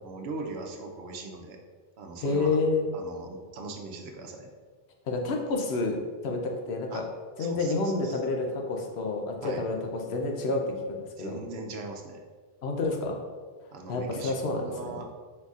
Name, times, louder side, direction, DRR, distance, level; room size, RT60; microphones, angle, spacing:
voice 1, 0.0-1.6 2.0-2.5 2.9-4.5 6.9-7.0 7.4-8.2 9.4-9.6 11.2-12.2 13.7-15.1, right 3 dB, 80° right, 2 dB, 0.9 m, -40 dB
voice 2, 2.2-2.9 5.1-7.1 7.4-11.4 12.6-13.2 13.9-14.9, left 3 dB, 85° left, 2 dB, 0.9 m, -29 dB
4.2 x 4.0 x 2.4 m, 1.5 s
omnidirectional pair, 1.1 m